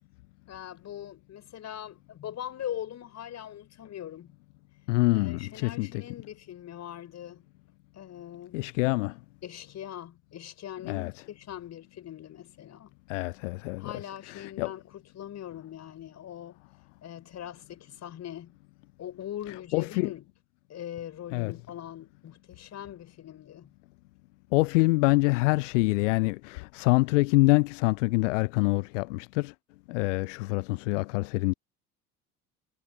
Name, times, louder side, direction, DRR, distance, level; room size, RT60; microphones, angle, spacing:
voice 1, 0.5-4.4 5.1-7.4 7.9-8.6 9.4-12.9 13.8-16.6 17.0-18.6 19.0-20.3 20.7-23.7, left 11 dB, 35° left, 5.6 m, -41 dB
voice 2, 4.9-6.0 8.5-9.1 10.8-11.1 13.1-13.9 14.3-14.7 19.7-20.1 21.3-21.5 24.5-29.5 29.9-31.5, left 23 dB, 55° left, 0.8 m, -25 dB
figure-of-eight pair, 65°, 44 cm